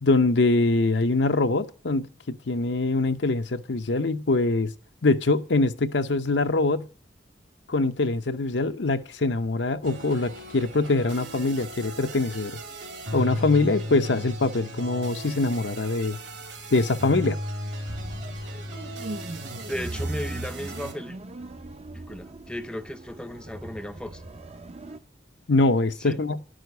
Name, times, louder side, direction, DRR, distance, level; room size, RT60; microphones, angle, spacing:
voice 1, 0.0-4.7 5.0-6.9 7.7-12.6 13.1-16.2 16.7-17.4 25.5-26.4, left 3 dB, 65° left, 0.7 m, -23 dB
sound 1, 9.8-20.9, equal, 70° right, 3.0 m, -35 dB
sound 2, 17.9-25.0, right 2 dB, 35° right, 0.7 m, -40 dB
voice 2, 19.7-21.2 21.9-24.2 26.0-26.2, equal, 5° left, 0.6 m, -35 dB
11.5 x 6.4 x 9.3 m
head